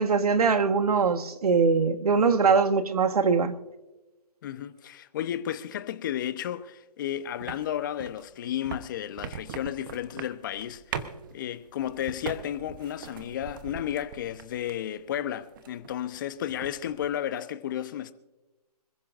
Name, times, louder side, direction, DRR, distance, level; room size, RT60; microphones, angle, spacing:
voice 1, 0.0-3.5, right 5 dB, 70° right, 1.5 m, -22 dB
voice 2, 4.4-11.1 11.3-18.1, left 11 dB, 30° left, 0.8 m, -33 dB
sound 1, 7.4-14.9 15.3-16.2 16.4-17.1, right 7 dB, 30° right, 1.0 m, -41 dB
26.0 x 15.0 x 2.6 m
hypercardioid pair, 155°, 20 cm